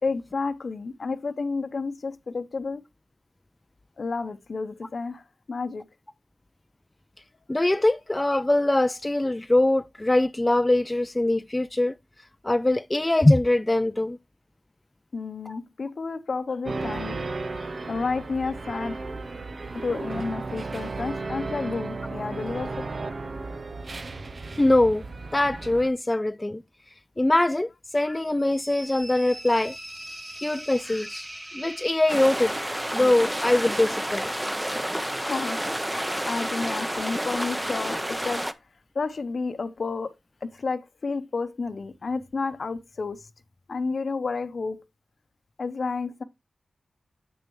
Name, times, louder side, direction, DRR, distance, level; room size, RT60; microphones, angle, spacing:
voice 1, 0.0-2.8 4.0-5.8 15.1-17.3 17.5-19.1 19.7-22.8 35.2-35.7 36.3-38.5 38.9-40.1 40.4-43.3 43.7-44.8 45.6-46.2, left 4 dB, 70° left, 0.8 m, -31 dB
voice 2, 7.5-12.0 12.4-14.2 15.5-15.6 24.6-25.0 25.3-26.6 27.2-29.8 30.4-31.3 31.5-32.5 32.9-34.3, left 1 dB, 25° left, 0.4 m, -22 dB
sound 1, 16.7-25.9, right 3 dB, 60° right, 0.6 m, -34 dB
sound 2, 28.4-32.6, right 1 dB, 45° right, 2.9 m, -41 dB
sound 3, 32.1-38.5, equal, 10° right, 0.8 m, -29 dB
8.0 x 6.3 x 3.1 m
cardioid pair, 40°, 0 cm